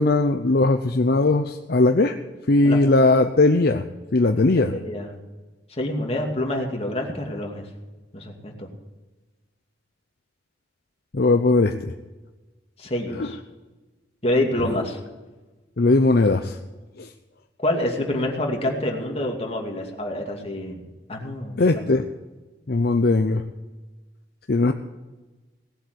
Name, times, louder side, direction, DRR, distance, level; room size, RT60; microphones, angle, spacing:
voice 1, 0.0-2.2 2.5-3.8 4.1-4.7 11.1-11.9 13.2-13.3 15.8-16.6 17.0-17.1 21.6-22.0 22.7-23.4 24.5-24.7, left 2 dB, 60° left, 7 dB, 0.7 m, -19 dB
voice 2, 4.5-5.1 5.8-7.7 8.1-8.7 12.8-13.4 14.2-15.0 17.6-20.8 21.1-21.6 21.9-22.0, left 1 dB, 35° left, 1 dB, 2.5 m, -27 dB
18.0 x 8.0 x 8.1 m, 1.2 s
head